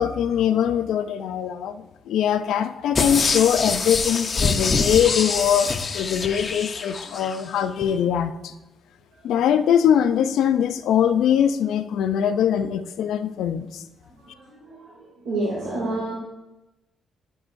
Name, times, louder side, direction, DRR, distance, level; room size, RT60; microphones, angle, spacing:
voice 1, 0.0-8.5 9.2-13.8, left 9 dB, 80° left, 10 dB, 0.5 m, -22 dB
sound 1, 2.9-7.4 7.8-7.9, left 4 dB, 35° left, 0.6 m, -25 dB
voice 2, 14.2-16.1, right 2 dB, 75° right, -8 dB, 2.6 m, -29 dB
11.0 x 5.4 x 2.6 m, 1.0 s
cardioid pair, 90°, 0 cm